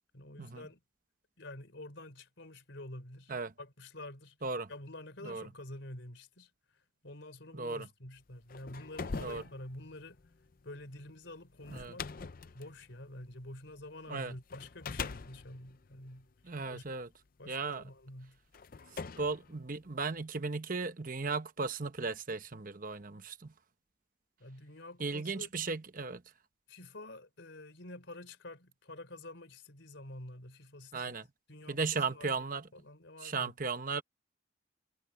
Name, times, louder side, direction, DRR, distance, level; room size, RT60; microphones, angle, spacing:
voice 1, 0.1-0.8 1.4-4.4 4.7-6.5 7.0-10.2 10.6-12.1 12.5-16.3 16.6-16.8 17.4-18.4 19.2-19.3 24.4-25.5 26.7-31.2 31.5-32.5 32.7-33.5, left 1 dB, 65° left, 4.1 m, -48 dB
voice 2, 7.5-7.9 9.2-9.4 11.7-12.0 14.1-14.3 16.4-17.1 17.5-17.8 18.9-23.5 25.0-26.2 30.9-31.2 31.7-32.7 33.2-34.0, right 4 dB, 45° right, 1.0 m, -36 dB
sound 1, 8.3-13.9 14.5-17.0 17.8-17.9 18.5-20.2, left 4 dB, 45° left, 0.5 m, -44 dB
head